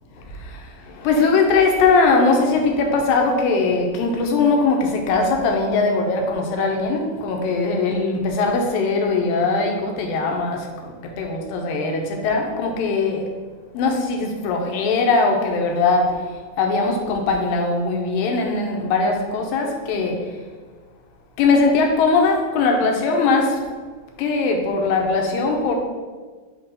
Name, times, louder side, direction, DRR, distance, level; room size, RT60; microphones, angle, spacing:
voice 1, 0.2-13.3 13.7-16.3 16.6-20.4 21.4-23.6 24.2-25.7, left 3 dB, 80° left, 2 dB, 2.6 m, -20 dB
7.6 x 3.0 x 5.6 m, 1.4 s
omnidirectional pair, 4.1 m